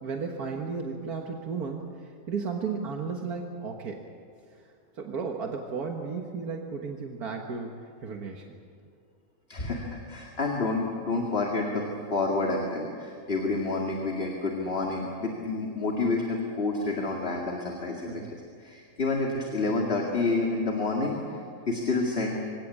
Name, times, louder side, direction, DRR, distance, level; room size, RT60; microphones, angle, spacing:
voice 1, 0.0-1.8 2.3-4.0 5.0-7.8 8.0-8.4 18.1-18.4, right 5 dB, 80° right, 2 dB, 1.9 m, -34 dB
voice 2, 9.5-11.9 12.1-18.2 18.6-21.4 21.7-22.4, left 3 dB, 40° left, 0 dB, 2.4 m, -29 dB
24.5 x 17.0 x 8.6 m, 2.4 s
omnidirectional pair, 1.6 m